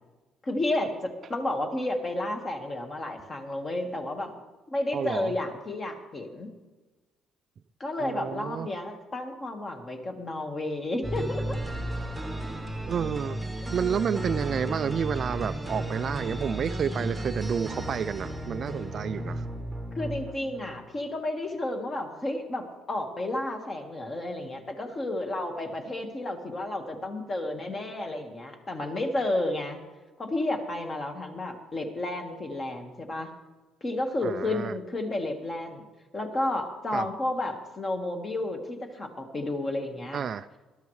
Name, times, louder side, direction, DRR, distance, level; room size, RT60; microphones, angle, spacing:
voice 1, 0.4-4.3 4.7-6.5 7.8-11.6 19.9-29.8 30.2-33.3 33.8-35.8 36.1-40.2, left 1 dB, 25° left, 1.5 m, -31 dB
voice 2, 4.9-5.4 8.0-8.7 12.8-13.4 13.7-19.5 34.2-34.7 36.9-37.1 40.1-40.5, right 7 dB, 40° right, 0.3 m, -30 dB
sound 1, 11.0-20.9, right 1 dB, 5° right, 1.3 m, -34 dB
20.5 x 12.0 x 3.2 m
cardioid pair, 150°, 0 cm